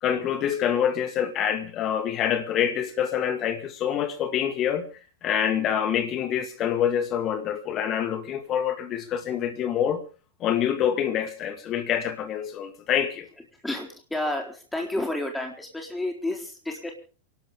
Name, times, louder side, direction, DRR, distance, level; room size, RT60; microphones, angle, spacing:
voice 1, 0.0-4.9 5.2-10.0 10.4-13.3, left 9 dB, 35° left, 2.3 m, -26 dB
voice 2, 13.6-16.9, left 1 dB, 5° left, 4.1 m, -30 dB
28.0 x 12.5 x 3.7 m
figure-of-eight pair, 90°, 0 cm